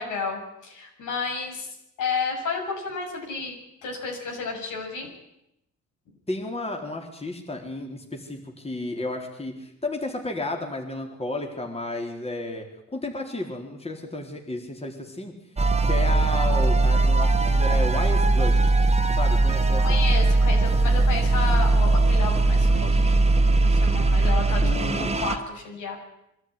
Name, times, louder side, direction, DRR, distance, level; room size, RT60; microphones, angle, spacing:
voice 1, 0.0-1.7 2.0-3.6 3.8-5.1 19.8-23.1 23.6-26.0, left 4 dB, 80° left, 1 dB, 7.1 m, -31 dB
voice 2, 6.3-15.3 15.8-18.7 19.1-20.0 24.6-25.1, left 1 dB, 20° left, 2 dB, 4.2 m, -32 dB
sound 1, 15.6-25.4, right 2 dB, 20° right, 1.7 m, -20 dB
23.5 x 13.5 x 10.0 m, 0.83 s
cardioid pair, 90°, 30 cm